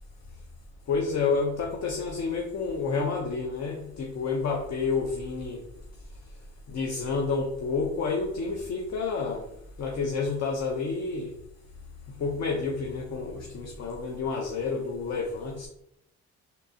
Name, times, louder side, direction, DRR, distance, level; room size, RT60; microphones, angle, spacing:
voice 1, 0.9-5.6 6.7-9.5 9.8-11.3 12.2-15.7, left 4 dB, 60° left, 1 dB, 0.6 m, -29 dB
3.7 x 2.8 x 2.6 m, 0.76 s
cardioid pair, 90°, 30 cm